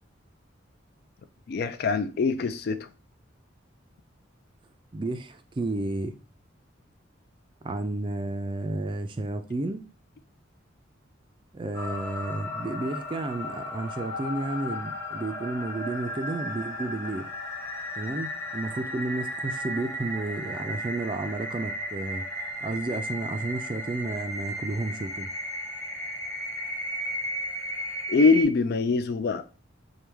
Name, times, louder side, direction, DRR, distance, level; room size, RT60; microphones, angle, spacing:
voice 1, 1.5-2.9 28.1-29.5, left 4 dB, 55° left, 0.3 m, -23 dB
voice 2, 4.9-6.1 7.6-9.8 11.5-17.3 18.0-22.3 22.6-25.3, right 2 dB, 25° right, 0.4 m, -32 dB
sound 1, 11.7-28.4, equal, 10° left, 0.9 m, -35 dB
4.6 x 2.2 x 3.4 m
head